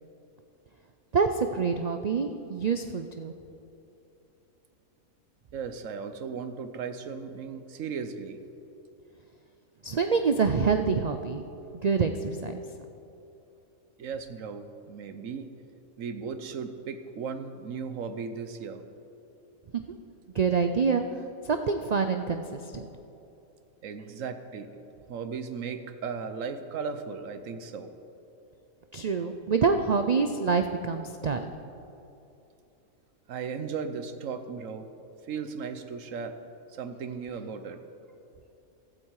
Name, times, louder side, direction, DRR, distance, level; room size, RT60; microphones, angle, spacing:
voice 1, 1.1-3.3 9.8-11.4 11.8-12.6 19.7-19.8 20.3-21.0 21.4-22.4 22.7-22.9 28.9-31.5, right 5 dB, 85° right, 7 dB, 0.3 m, -26 dB
voice 2, 5.5-8.4 14.0-15.5 16.0-18.8 23.8-24.7 25.1-27.9 33.3-34.9 35.2-36.3 36.7-37.8, right 6 dB, 70° right, 9 dB, 1.2 m, -36 dB
15.5 x 12.5 x 4.7 m, 2.9 s
omnidirectional pair, 1.4 m